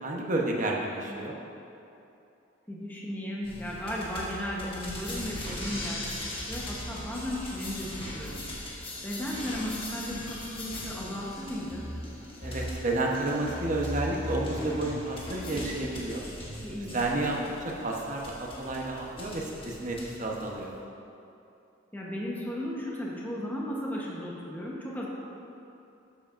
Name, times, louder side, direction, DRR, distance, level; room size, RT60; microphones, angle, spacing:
voice 1, 0.0-1.3 12.4-16.2 16.9-20.7, right 2 dB, 40° right, -1 dB, 1.0 m, -31 dB
voice 2, 2.7-8.5 9.0-11.9 16.6-17.0 21.9-25.1, left 1 dB, 10° left, -5 dB, 1.0 m, -35 dB
sound 1, 3.4-20.8, left 1 dB, 30° left, 1.3 m, -39 dB
13.0 x 7.4 x 2.6 m, 2.8 s
head